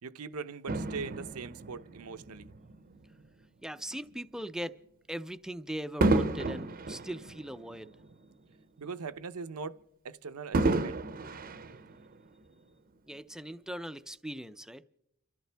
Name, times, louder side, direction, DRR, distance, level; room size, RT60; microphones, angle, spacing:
voice 1, 0.0-2.5 8.8-9.8 10.0-11.0, right 5 dB, 85° right, 0.7 m, -41 dB
Fireworks, 0.7-3.3 3.9-4.1 6.0-8.5 8.9-9.0 10.5-12.4 13.2-13.3, right 2 dB, 40° right, 0.7 m, -32 dB
voice 2, 3.6-4.7 5.1-7.9 13.1-14.8, equal, 5° right, 0.5 m, -40 dB
29.5 x 14.0 x 3.4 m
head